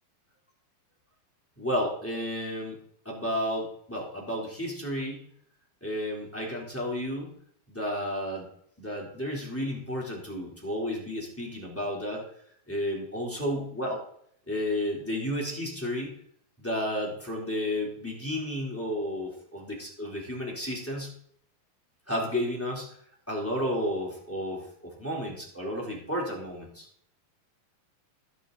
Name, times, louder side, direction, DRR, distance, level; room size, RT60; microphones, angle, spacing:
voice 1, 1.6-2.8 3.0-5.2 5.8-7.3 7.7-8.5 8.8-12.2 12.7-14.0 14.5-16.1 16.6-21.1 22.1-22.9 23.3-26.9, equal, 5° left, -3 dB, 2.5 m, -32 dB
16.5 x 6.9 x 3.9 m, 0.65 s
omnidirectional pair, 4.4 m